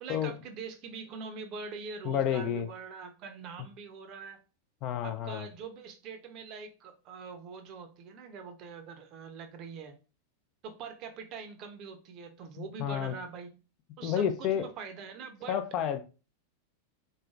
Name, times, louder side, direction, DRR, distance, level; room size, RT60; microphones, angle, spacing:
voice 1, 0.0-4.4 5.0-9.9 10.6-13.5 14.0-15.6, right 5 dB, 40° right, 0.6 m, -43 dB
voice 2, 2.0-2.7 4.8-5.5 12.6-13.1 14.0-14.7 15.5-16.0, left 9 dB, 40° left, 0.4 m, -30 dB
3.7 x 3.2 x 2.4 m
figure-of-eight pair, 90°, 0 cm